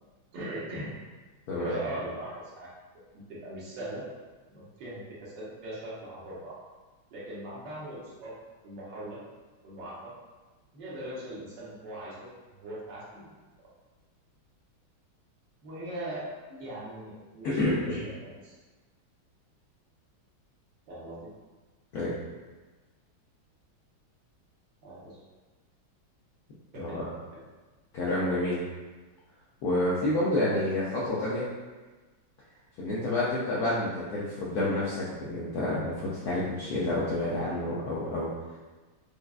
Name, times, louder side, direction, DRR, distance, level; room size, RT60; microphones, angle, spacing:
voice 1, 0.3-0.9 1.6-2.7 3.1-4.0 4.5-6.5 7.1-8.3 8.6-9.2 9.6-10.1 10.7-12.3 12.6-13.3 15.6-16.2 16.6-17.6 18.0-18.6 20.9-21.3 24.8-25.2 26.7-27.0, right 1 dB, 65° right, -7 dB, 1.4 m, -40 dB
voice 2, 1.5-1.8 17.4-18.0 21.9-22.1 26.8-27.0 27.9-28.6 29.6-31.5 32.8-38.3, left 1 dB, 85° left, -7 dB, 0.8 m, -29 dB
4.8 x 2.2 x 2.3 m, 1.3 s
omnidirectional pair, 2.3 m